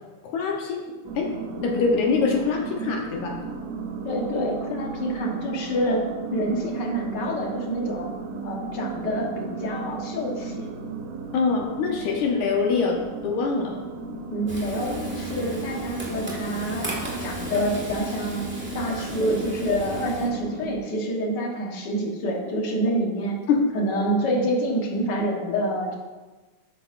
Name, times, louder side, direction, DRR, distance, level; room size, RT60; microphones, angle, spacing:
voice 1, 0.3-0.8 1.2-1.3 1.5-3.4 11.3-13.0 13.2-13.8 23.5-23.7, left 5 dB, 75° left, 0 dB, 2.3 m, -24 dB
sound 1, 1.0-20.8, right 4 dB, 70° right, 2.2 m, -35 dB
voice 2, 4.0-6.0 6.3-8.1 8.4-10.7 14.3-16.9 17.2-18.5 18.7-23.3 23.7-25.9, equal, 50° left, 0 dB, 1.3 m, -27 dB
Frying (food), 14.5-20.3, right 1 dB, 10° right, 0.7 m, -36 dB
12.0 x 8.4 x 2.6 m, 1.2 s
omnidirectional pair, 3.6 m